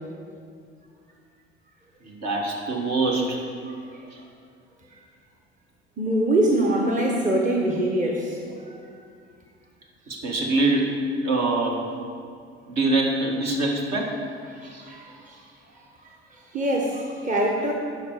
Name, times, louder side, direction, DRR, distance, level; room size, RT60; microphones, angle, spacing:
voice 1, 2.0-3.4 10.1-11.8 12.7-14.1 14.6-14.9, right 2 dB, 50° right, -1 dB, 1.9 m, -24 dB
voice 2, 3.6-4.0 4.9-5.0 6.0-8.8 14.6-15.4 16.0-17.7, right 1 dB, 25° right, 0 dB, 1.2 m, -25 dB
12.0 x 4.8 x 4.8 m, 2.3 s
hypercardioid pair, 60°, 33 cm